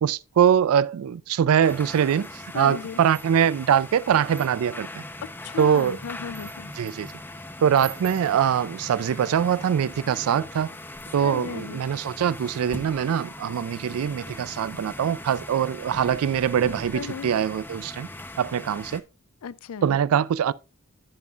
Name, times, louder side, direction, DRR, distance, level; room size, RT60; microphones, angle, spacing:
voice 1, 0.0-2.3 2.5-5.0 5.6-6.0 6.8-7.1 7.6-10.7 11.1-18.1 18.4-19.0 19.8-20.5, right 8 dB, 80° right, 0.3 m, -23 dB
sound 1, 1.6-19.0, left 1 dB, 10° left, 0.7 m, -40 dB
sound 2, 1.7-2.4 2.9-3.6 4.3-4.8 5.4-7.2 7.7-8.4, right 10 dB, 25° right, 0.9 m, -46 dB
voice 2, 2.5-3.0 5.4-6.7 11.2-11.8 16.9-17.3 19.4-20.0, left 7 dB, 90° left, 0.4 m, -35 dB
15.5 x 5.4 x 2.4 m
head